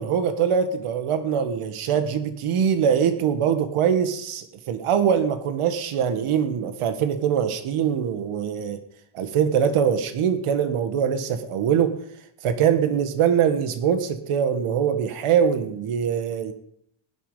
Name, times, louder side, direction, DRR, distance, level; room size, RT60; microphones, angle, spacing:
voice 1, 0.0-8.8 9.1-12.0 12.4-16.5, right 8 dB, 90° right, 9 dB, 1.8 m, -23 dB
18.5 x 11.0 x 5.6 m, 0.73 s
cardioid pair, 95°, 49 cm